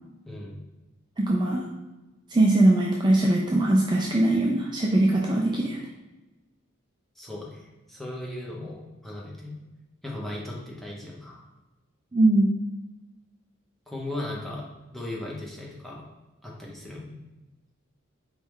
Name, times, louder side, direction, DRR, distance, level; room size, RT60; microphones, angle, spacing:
voice 1, 0.2-0.6 7.2-9.5 10.0-11.4 13.9-16.1 16.4-17.1, left 1 dB, ahead, -4 dB, 0.8 m, -37 dB
voice 2, 1.2-1.7 2.3-5.8 12.1-12.5, right 1 dB, 20° right, -2 dB, 0.4 m, -21 dB
4.5 x 3.1 x 3.6 m, 1.1 s
head